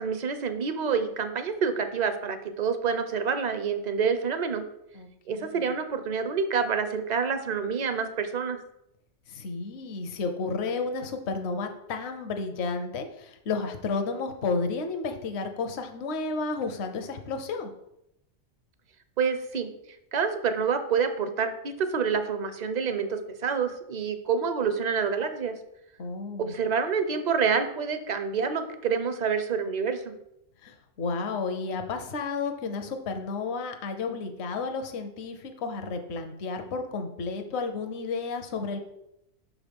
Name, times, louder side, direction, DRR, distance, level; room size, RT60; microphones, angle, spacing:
voice 1, 0.0-4.6 5.3-8.6 19.2-19.7 20.1-25.5 26.4-30.0, right 6 dB, 45° right, 9 dB, 0.6 m, -27 dB
voice 2, 4.9-5.6 9.3-17.7 26.0-26.5 30.6-38.8, left 4 dB, 65° left, 6 dB, 1.0 m, -32 dB
5.9 x 4.9 x 5.2 m, 0.82 s
omnidirectional pair, 1.2 m